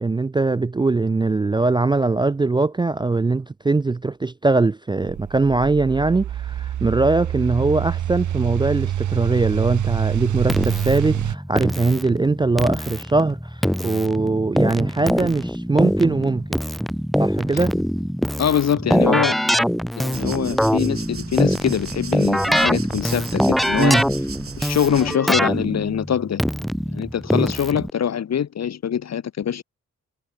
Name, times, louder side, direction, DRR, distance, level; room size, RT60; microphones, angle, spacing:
voice 1, 0.0-16.6 17.2-17.7 23.8-24.0, right 3 dB, 15° right, 0.3 m, -21 dB
sound 1, 5.0-11.4, right 11 dB, 85° right, 0.9 m, -26 dB
Keyboard (musical), 10.5-27.9, equal, ahead, 0.9 m, -23 dB
voice 2, 18.4-19.4 20.0-24.0 24.6-26.4 26.9-29.6, left 8 dB, 65° left, 1.1 m, -23 dB
sound 2, 20.1-25.2, right 5 dB, 50° right, 3.0 m, -36 dB
cardioid pair, 90°, 29 cm